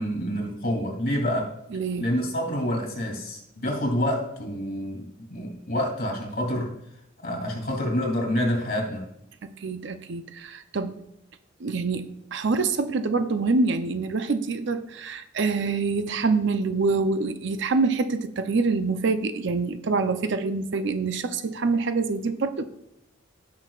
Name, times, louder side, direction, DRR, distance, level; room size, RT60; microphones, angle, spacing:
voice 1, 0.0-1.5 2.0-6.7 7.2-9.0, equal, 50° left, 0 dB, 2.8 m, -27 dB
voice 2, 1.7-2.1 9.6-10.9 11.6-22.6, right 4 dB, 65° right, 9 dB, 0.6 m, -26 dB
16.0 x 6.2 x 2.4 m, 0.82 s
head